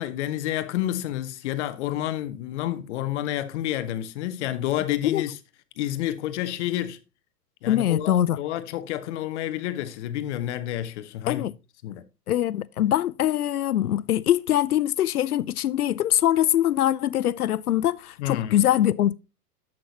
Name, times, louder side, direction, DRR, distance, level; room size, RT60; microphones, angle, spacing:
voice 1, 0.0-5.4 5.8-7.0 7.6-11.5 11.8-12.0 18.2-18.7, left 13 dB, 45° left, 1.1 m, -29 dB
voice 2, 7.7-8.4 11.3-11.5 12.3-19.1, left 12 dB, 65° left, 0.6 m, -23 dB
11.0 x 7.8 x 2.7 m
figure-of-eight pair, 95°, 48 cm